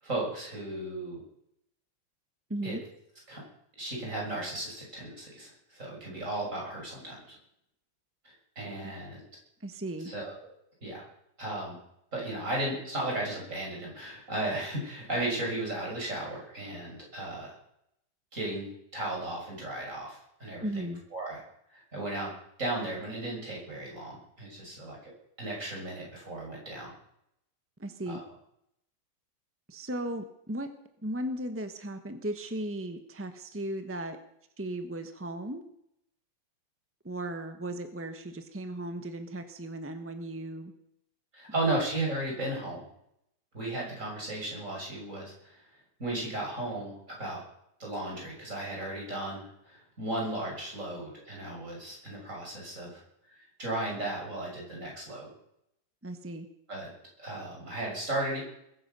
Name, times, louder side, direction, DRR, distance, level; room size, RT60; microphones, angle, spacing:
voice 1, 0.0-1.2 2.6-2.8 3.3-3.4 3.8-7.4 8.2-9.2 10.1-10.3 10.8-11.0 11.4-11.8 12.1-17.6 18.3-18.7 18.9-21.4 21.7-22.3 22.6-25.1 25.4-26.9 28.1-28.2 41.3-42.8 43.5-45.6 46.0-47.4 47.8-53.0 53.3-55.3 56.7-56.9 57.2-58.4, right 1 dB, 35° right, -2 dB, 7.0 m, -35 dB
voice 2, 2.5-2.8 8.8-8.9 9.6-10.1 20.6-21.0 27.8-28.2 29.7-30.7 31.0-34.2 34.6-35.6 37.0-40.7 41.6-41.8 56.0-56.5, right 1 dB, 10° right, 8 dB, 0.6 m, -36 dB
21.0 x 9.9 x 6.8 m, 0.77 s
omnidirectional pair, 2.4 m